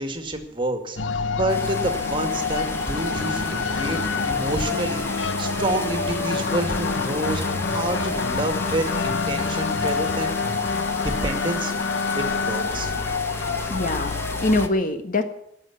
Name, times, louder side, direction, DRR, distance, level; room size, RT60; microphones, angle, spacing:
voice 1, 0.0-4.0 4.3-10.4 11.0-11.8 12.2-12.9, right 1 dB, 25° right, 6 dB, 2.2 m, -28 dB
sound 1, 1.0-14.7, left 4 dB, 85° left, 0.8 m, -27 dB
sound 2, 1.5-14.7, left 1 dB, 15° left, 1.3 m, -34 dB
sound 3, 3.1-10.7, right 1 dB, 60° right, 1.5 m, -39 dB
voice 2, 13.7-15.2, left 2 dB, 45° left, 7 dB, 1.5 m, -23 dB
18.5 x 7.4 x 9.7 m, 0.73 s
head